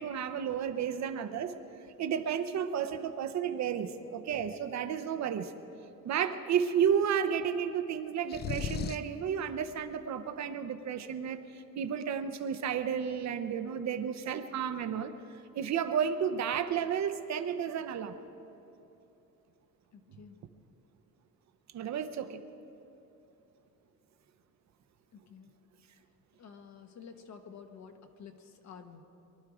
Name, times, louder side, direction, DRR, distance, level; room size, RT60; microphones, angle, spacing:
voice 1, 0.0-1.5 2.0-5.5 6.0-15.1 15.5-18.2 21.7-22.4, right 8 dB, 50° right, 9 dB, 0.7 m, -32 dB
sound 1, 8.3-9.2, left 6 dB, 30° left, 0.4 m, -35 dB
voice 2, 19.9-20.4 25.1-25.5 26.4-29.0, left 6 dB, 50° left, 6 dB, 1.2 m, -50 dB
23.0 x 12.0 x 4.9 m, 2.9 s
cardioid pair, 175°, 36 cm